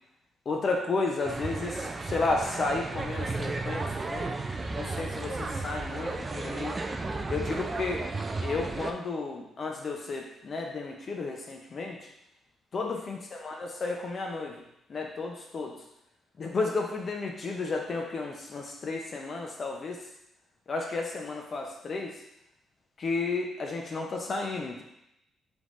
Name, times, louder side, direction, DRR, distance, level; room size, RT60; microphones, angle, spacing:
voice 1, 0.5-4.3 4.8-6.7 7.3-8.0 8.4-12.1 12.7-14.6 14.9-15.8 16.4-20.0 20.7-22.2 23.0-24.8, left 3 dB, 40° left, 1 dB, 0.5 m, -32 dB
sound 1, 1.2-8.9, right 3 dB, 25° right, 0.3 m, -34 dB
3.8 x 3.4 x 3.1 m, 0.83 s
cardioid pair, 130°, 0 cm